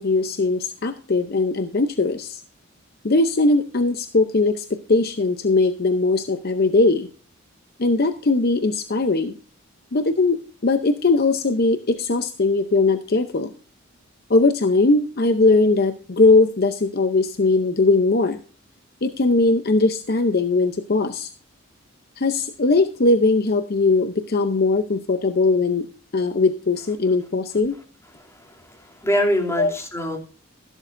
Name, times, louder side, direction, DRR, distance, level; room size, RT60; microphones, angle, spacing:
voice 1, 0.0-2.4 3.0-7.1 7.8-9.3 9.9-13.5 14.3-18.4 19.0-21.3 22.2-25.9 26.1-27.7 29.6-29.7, left 3 dB, 45° left, 9 dB, 0.7 m, -20 dB
voice 2, 28.7-30.2, equal, 15° left, 0 dB, 2.7 m, -24 dB
13.0 x 12.0 x 2.6 m, 0.38 s
head